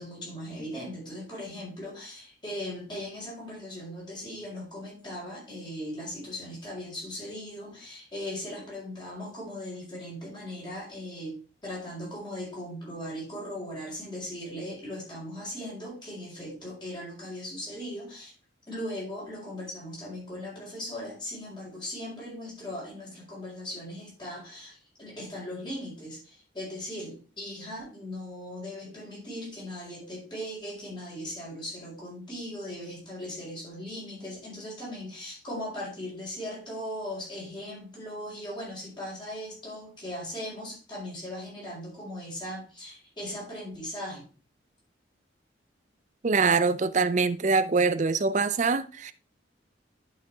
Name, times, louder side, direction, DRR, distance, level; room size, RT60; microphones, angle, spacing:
voice 1, 0.0-11.3 11.6-18.3 18.7-44.2, left 1 dB, 25° left, 5.2 m, -38 dB
voice 2, 46.2-49.1, right 4 dB, 40° right, 0.5 m, -24 dB
10.5 x 5.7 x 3.5 m
head